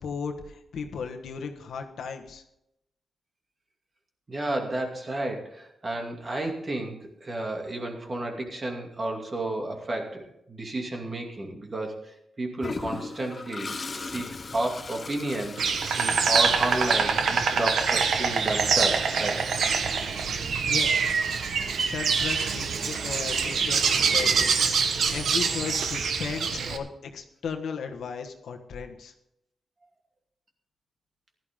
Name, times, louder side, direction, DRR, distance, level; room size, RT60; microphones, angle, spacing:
voice 1, 0.0-2.4 20.7-21.0 21.8-29.1, left 5 dB, 80° left, 4 dB, 1.4 m, -36 dB
voice 2, 4.3-12.1 12.4-15.7 16.0-19.4, right 1 dB, 30° right, 2 dB, 2.4 m, -32 dB
Toilet flush, 12.6-17.7, left 4 dB, 35° left, 0.7 m, -38 dB
Insect, 15.6-26.8, right 5 dB, 75° right, 1.2 m, -25 dB
15.5 x 12.0 x 3.7 m, 0.81 s
wide cardioid pair, 120°, 0 cm